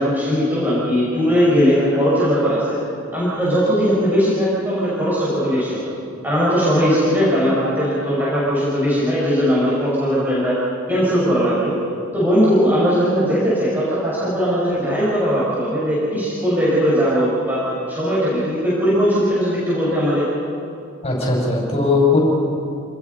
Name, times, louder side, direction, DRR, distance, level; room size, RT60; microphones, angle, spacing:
voice 1, 0.0-2.7 3.1-5.9 6.2-10.6 10.9-11.7 12.1-20.2, equal, 10° right, -9 dB, 5.8 m, -19 dB
voice 2, 21.0-22.2, left 3 dB, 30° left, -2 dB, 6.2 m, -18 dB
28.0 x 20.0 x 5.5 m, 2.6 s
head